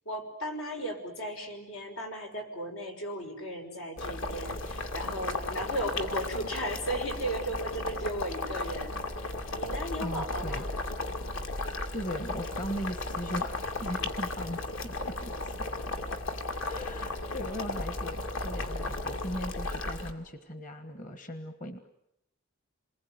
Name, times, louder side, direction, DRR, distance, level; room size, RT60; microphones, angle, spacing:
voice 1, 0.1-8.9 9.6-10.7, right 1 dB, 85° left, 4 dB, 5.8 m, -36 dB
Boiling, 4.0-20.1, left 2 dB, 65° left, 2.6 m, -35 dB
voice 2, 10.0-10.6 11.9-15.6 16.7-21.8, equal, 40° left, 9 dB, 1.5 m, -38 dB
28.0 x 21.5 x 9.6 m, 0.83 s
head